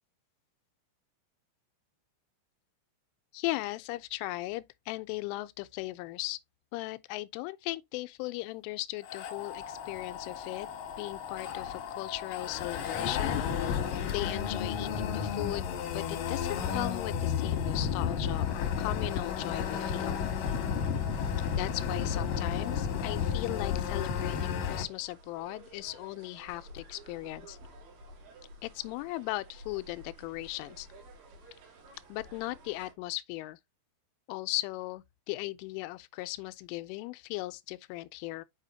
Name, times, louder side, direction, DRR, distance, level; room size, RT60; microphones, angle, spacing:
voice 1, 3.3-6.4 6.7-10.7 11.0-13.4 14.1-20.2 21.5-27.6 28.6-30.9 32.1-33.6 34.3-38.5, left 19 dB, 85° left, 3.1 m, -37 dB
sound 1, 9.0-24.8, left 7 dB, 65° left, 2.3 m, -32 dB
sound 2, 17.5-32.9, right 1 dB, 70° right, 4.2 m, -53 dB
8.2 x 5.7 x 2.7 m
omnidirectional pair, 5.6 m